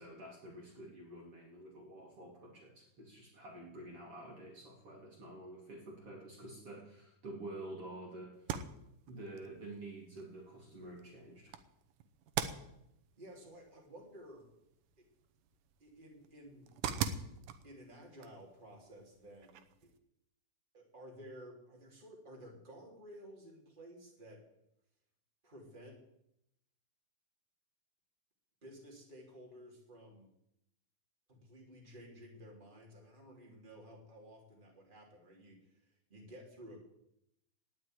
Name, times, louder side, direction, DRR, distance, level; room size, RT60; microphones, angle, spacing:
voice 1, 0.0-8.6 9.1-11.5, right 1 dB, 45° right, -1 dB, 3.2 m, -49 dB
sound 1, 8.3-20.0, right 8 dB, 80° right, 2.5 m, -45 dB
voice 2, 13.2-14.4 15.0-15.1 15.8-16.7 17.6-19.9 20.7-24.4 25.4-26.0 28.6-30.3 31.3-36.8, equal, 15° right, -2 dB, 3.4 m, -54 dB
18.5 x 6.6 x 9.3 m, 0.80 s
omnidirectional pair, 3.7 m